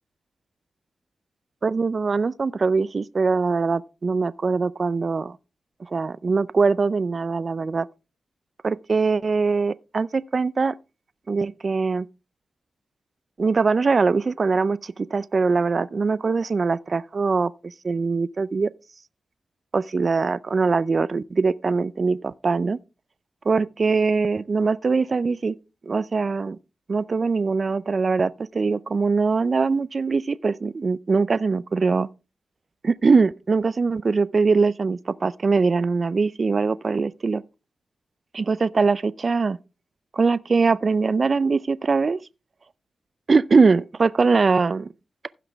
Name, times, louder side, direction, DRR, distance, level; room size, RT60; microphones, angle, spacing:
voice 1, 1.6-5.3 5.9-7.9 8.6-10.7 11.3-12.1 13.4-18.7 19.7-22.8 23.5-25.6 25.9-26.6 26.9-32.1 32.8-37.4 38.3-39.6 40.1-42.2 43.3-44.9, right 4 dB, 55° right, 0.4 m, -22 dB
15.5 x 5.9 x 3.4 m
cardioid pair, 45°, 0 cm